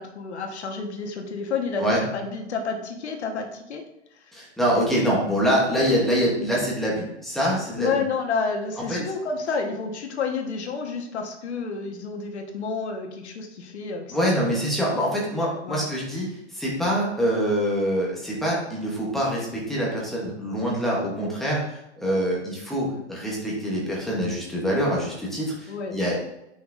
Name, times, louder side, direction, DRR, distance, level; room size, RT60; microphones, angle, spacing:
voice 1, 0.0-3.8 4.1-4.2 4.7-4.8 7.8-14.4 15.6-16.0 20.8-20.9 25.7-26.0, left 4 dB, 70° left, 3 dB, 1.4 m, -30 dB
voice 2, 4.3-7.9 8.9-9.0 14.1-26.2, equal, ahead, -5 dB, 1.0 m, -25 dB
8.1 x 5.9 x 2.6 m, 0.84 s
hypercardioid pair, 160°, 35 cm